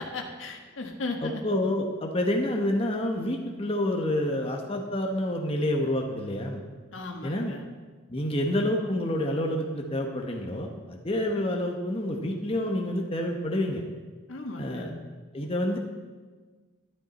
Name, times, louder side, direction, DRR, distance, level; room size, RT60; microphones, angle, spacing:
voice 1, 0.0-1.4 6.9-7.6 14.3-15.0, left 3 dB, 75° left, 3 dB, 1.5 m, -36 dB
voice 2, 1.2-6.6 7.2-7.5 8.1-13.8 14.6-14.9 15.3-15.8, left 1 dB, 30° left, 2 dB, 1.0 m, -28 dB
12.5 x 11.0 x 4.2 m, 1.4 s
head